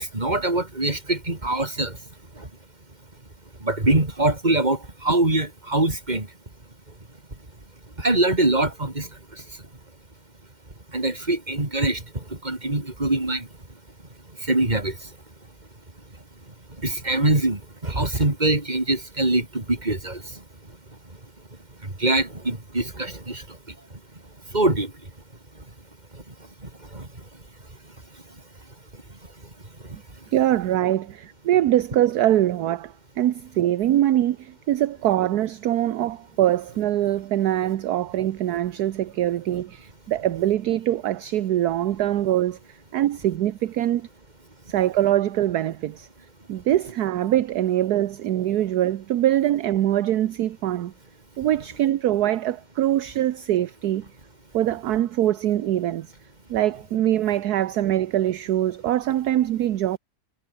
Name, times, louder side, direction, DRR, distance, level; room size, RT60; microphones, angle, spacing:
voice 1, 0.0-2.0 2.3-2.5 3.6-6.3 8.0-9.6 10.9-13.5 14.4-15.1 16.5-21.0 21.8-24.0 24.5-25.1 25.5-25.7 26.1-27.4 28.1-28.2 28.9-29.5 29.8-30.0, right 2 dB, 25° right, 3.9 m, -25 dB
voice 2, 30.3-42.6 42.9-44.1 44.7-46.1 46.5-50.9 51.4-54.1 54.5-56.1 56.5-60.0, right 12 dB, 65° right, 1.3 m, -23 dB
omnidirectional pair, 1.9 m